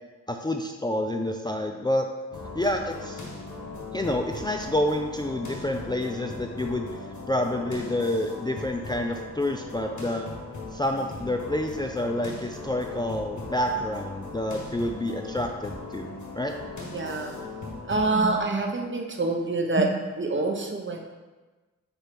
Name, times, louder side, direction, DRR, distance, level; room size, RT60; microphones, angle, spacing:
voice 1, 0.3-2.1 2.5-3.2 3.9-6.9 7.3-10.3 10.7-16.5, left 1 dB, 15° left, 3 dB, 0.4 m, -28 dB
sound 1, 2.3-18.3, left 3 dB, 65° left, 1.4 m, -39 dB
voice 2, 16.9-17.4 17.9-21.1, right 2 dB, 40° right, 2 dB, 0.9 m, -26 dB
4.4 x 4.3 x 5.2 m, 1.2 s
cardioid pair, 60°, 31 cm